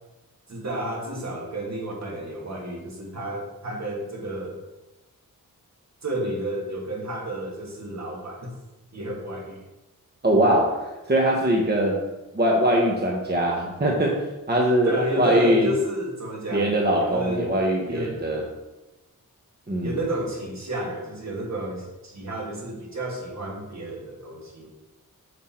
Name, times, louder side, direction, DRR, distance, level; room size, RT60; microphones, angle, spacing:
voice 1, 0.5-4.6 6.0-8.5 8.9-9.6 14.9-17.6 17.9-18.2 19.8-24.7, right 1 dB, 50° right, -1 dB, 1.8 m, -31 dB
voice 2, 10.2-12.1 12.3-15.7 16.5-18.4 19.7-20.0, right 1 dB, 30° right, -1 dB, 1.0 m, -22 dB
5.9 x 5.7 x 4.3 m, 1.0 s
wide cardioid pair, 100°, 34 cm